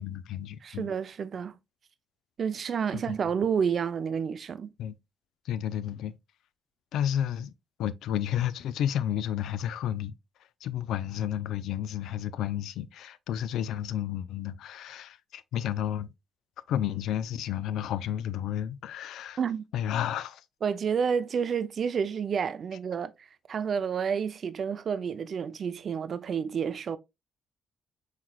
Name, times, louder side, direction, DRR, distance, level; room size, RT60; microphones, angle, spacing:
voice 1, 0.0-0.9 2.9-3.1 4.8-4.9 5.4-6.1 6.9-7.5 7.8-10.1 10.6-16.1 16.7-19.4 19.7-20.4, left 10 dB, 80° left, 0.3 m, -31 dB
voice 2, 0.6-1.5 2.4-4.7 19.4-19.6 20.6-23.1 23.5-27.0, right 7 dB, 50° right, 0.4 m, -29 dB
5.8 x 3.1 x 2.3 m
cardioid pair, 90°, 0 cm